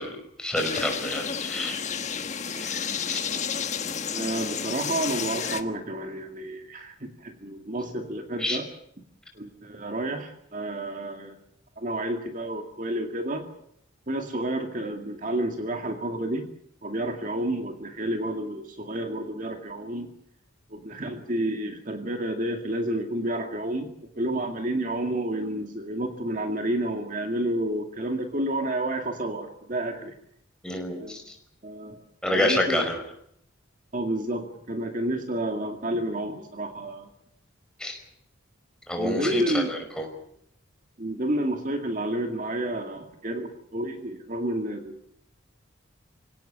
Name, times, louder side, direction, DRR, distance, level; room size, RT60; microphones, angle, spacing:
voice 1, 0.0-1.8 2.5-3.3 8.4-8.6 30.6-31.4 32.2-33.0 37.8-38.0 38.9-40.1, left 1 dB, 5° left, 3 dB, 5.3 m, -28 dB
sound 1, 0.6-5.6, left 6 dB, 35° left, 1.4 m, -31 dB
voice 2, 4.1-8.7 9.3-11.4 11.8-13.5 14.1-16.5 16.8-20.1 20.7-30.2 30.9-31.2 31.6-32.0 32.4-32.9 33.9-37.1 39.0-39.7 41.0-45.0, right 1 dB, 40° right, 4 dB, 2.2 m, -30 dB
26.0 x 17.5 x 8.8 m, 0.72 s
head